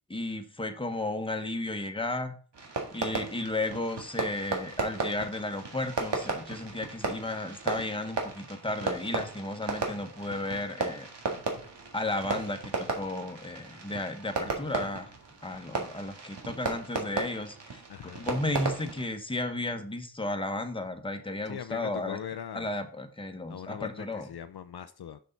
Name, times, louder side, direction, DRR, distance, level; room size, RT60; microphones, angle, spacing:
voice 1, 0.1-2.3 2.9-11.1 11.9-15.1 15.4-22.2 22.5-24.3, left 2 dB, 10° left, 6 dB, 1.1 m, -34 dB
Fireworks, 2.5-19.0, right 3 dB, 80° right, 1.7 m, -35 dB
voice 2, 17.9-18.3 21.5-22.7 23.5-25.2, left 9 dB, 65° left, 11 dB, 0.6 m, -40 dB
6.3 x 5.6 x 4.0 m, 0.41 s
cardioid pair, 60°, 41 cm